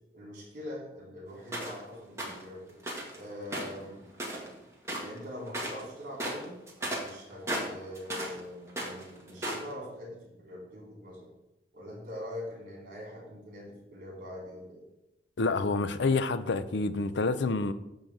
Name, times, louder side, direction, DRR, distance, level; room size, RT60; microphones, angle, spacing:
voice 1, 0.1-2.8 3.1-4.0 5.0-6.6 7.0-11.3 11.7-14.8, left 1 dB, 50° right, 4.0 m, -43 dB
sound 1, 1.5-1.8 2.2-2.4 2.8-3.2 3.5-4.6 4.8-5.2 5.5-5.8 6.1-8.4 8.7-9.7, right 1 dB, 15° right, 2.0 m, -35 dB
voice 2, 15.4-17.7, left 3 dB, 80° left, 0.6 m, -28 dB
10.0 x 3.9 x 7.1 m
head